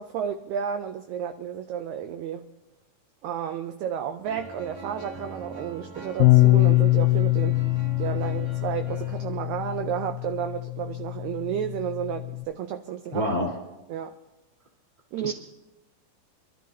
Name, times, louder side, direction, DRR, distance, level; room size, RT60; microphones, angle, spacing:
voice 1, 0.0-2.5 3.2-7.6 8.0-13.2 13.9-14.1 15.1-15.3, right 9 dB, 80° right, 1.7 m, -32 dB
sound 1, 4.2-9.3, right 2 dB, 40° right, 3.2 m, -43 dB
Bass guitar, 6.2-12.4, left 20 dB, 80° left, 2.1 m, -23 dB
voice 2, 13.1-13.5 15.2-15.3, equal, 15° right, 2.4 m, -27 dB
26.0 x 12.5 x 2.7 m
omnidirectional pair, 3.8 m